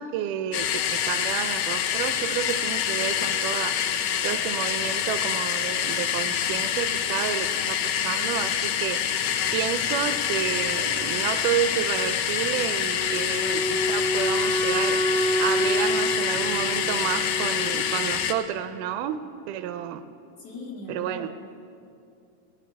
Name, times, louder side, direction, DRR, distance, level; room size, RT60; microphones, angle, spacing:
voice 1, 0.0-3.8 4.2-7.8 8.0-9.0 9.5-15.0 15.4-19.2 19.5-20.0 20.9-21.3, right 10 dB, 80° right, 10 dB, 2.1 m, -30 dB
sound 1, 0.5-18.3, left 9 dB, 75° left, 2.1 m, -26 dB
Wind instrument woodwind instrument, 12.9-18.0, equal, 50° right, 1.4 m, -27 dB
voice 2, 20.4-21.5, left 2 dB, 50° left, -2 dB, 2.6 m, -39 dB
19.0 x 6.9 x 9.4 m, 2.5 s
omnidirectional pair, 3.9 m